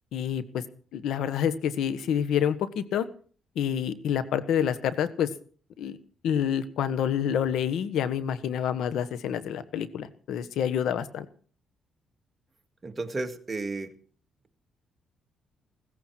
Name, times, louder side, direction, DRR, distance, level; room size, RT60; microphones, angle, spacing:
voice 1, 0.1-0.6 0.9-3.1 3.5-5.3 5.8-6.0 6.2-11.2, left 9 dB, 80° left, 1.4 m, -28 dB
voice 2, 12.8-13.9, right 3 dB, 30° right, 1.9 m, -33 dB
16.5 x 15.0 x 4.6 m
cardioid pair, 90°, 0 cm